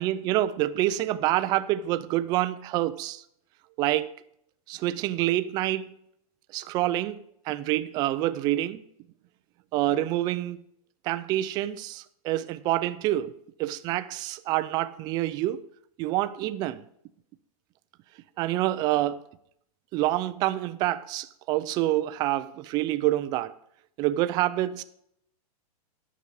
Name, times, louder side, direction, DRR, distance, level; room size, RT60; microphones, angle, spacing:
voice 1, 0.0-3.2 3.8-4.1 4.7-5.9 6.5-8.8 9.7-10.6 11.0-13.3 13.6-15.6 16.0-16.8 18.4-19.2 19.9-23.5 24.0-24.8, right 14 dB, 20° right, 0.4 m, -27 dB
9.9 x 6.0 x 7.9 m
supercardioid pair, 160°, 19 cm